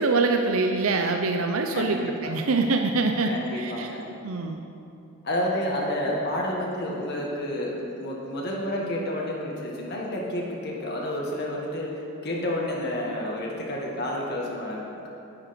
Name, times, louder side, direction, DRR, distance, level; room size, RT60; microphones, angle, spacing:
voice 1, 0.0-3.9 4.2-4.6, right 3 dB, 70° right, 4 dB, 0.6 m, -24 dB
voice 2, 1.7-2.3 3.2-4.1 5.2-15.1, left 1 dB, 50° left, -3 dB, 1.5 m, -30 dB
10.0 x 10.0 x 5.2 m, 2.8 s
head